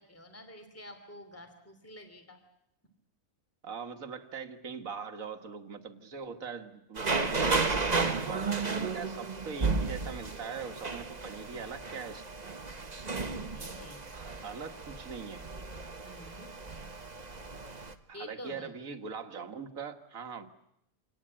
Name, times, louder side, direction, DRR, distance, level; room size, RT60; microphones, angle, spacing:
voice 1, 0.0-2.4 13.1-14.3 16.0-16.5 18.1-18.7, equal, 10° left, 7 dB, 2.9 m, -48 dB
voice 2, 3.6-12.2 14.1-15.5 18.1-20.5, right 5 dB, 75° right, 8 dB, 1.9 m, -42 dB
sound 1, 7.0-17.9, right 4 dB, 30° right, 1.4 m, -33 dB
26.5 x 19.0 x 8.7 m, 0.81 s
omnidirectional pair, 1.4 m